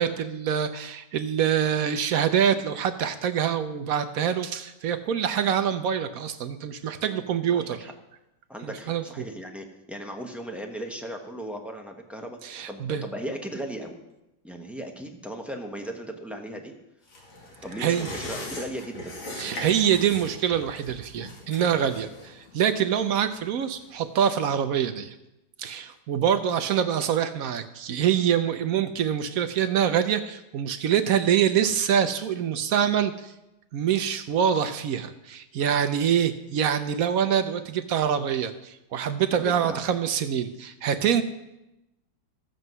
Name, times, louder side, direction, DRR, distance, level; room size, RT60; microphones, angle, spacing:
voice 1, 0.0-7.8 8.6-9.2 12.4-13.0 17.8-18.1 19.4-25.1 25.6-33.3 33.7-41.2, right 8 dB, 75° right, 9 dB, 0.8 m, -25 dB
voice 2, 7.1-7.9 8.5-12.4 12.7-14.0 14.4-16.7 17.6-19.2 39.4-39.8, right 1 dB, ahead, 3 dB, 0.4 m, -37 dB
sound 1, 17.1-24.1 24.5-24.6, left 1 dB, 85° left, 3.1 m, -40 dB
13.5 x 7.8 x 5.4 m, 0.94 s
omnidirectional pair, 2.1 m